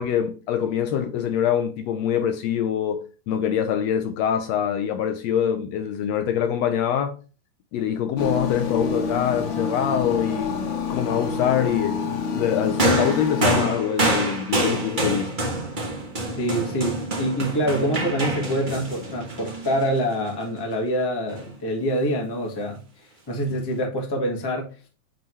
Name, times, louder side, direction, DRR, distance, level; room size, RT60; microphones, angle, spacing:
voice 1, 0.0-7.2 7.7-12.0 12.3-15.3, left 9 dB, 75° left, 1.7 m, -24 dB
sound 1, 8.2-13.6, left 5 dB, 60° left, 1.8 m, -27 dB
sound 2, 12.8-20.3 21.3-21.4, right 2 dB, 75° right, 0.4 m, -26 dB
voice 2, 16.4-22.8 23.3-24.7, equal, 15° left, 0.7 m, -25 dB
8.6 x 3.8 x 3.1 m
omnidirectional pair, 3.3 m